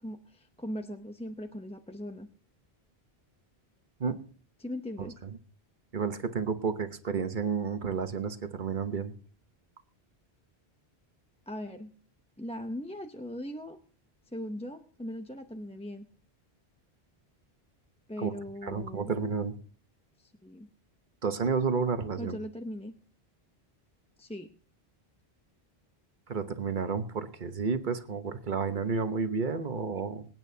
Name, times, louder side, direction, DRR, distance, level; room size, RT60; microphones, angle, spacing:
voice 1, 0.0-2.3 4.6-5.2 11.5-11.9 12.4-13.8 14.3-16.0 18.1-19.1 20.2-20.7 22.2-22.9 24.2-24.5, left 1 dB, 5° left, 5 dB, 0.6 m, -39 dB
voice 2, 5.9-9.1 18.2-18.3 18.6-19.5 21.2-22.4 26.3-30.3, right 5 dB, 50° right, 9 dB, 1.1 m, -31 dB
25.5 x 8.9 x 2.8 m, 0.42 s
omnidirectional pair, 1.1 m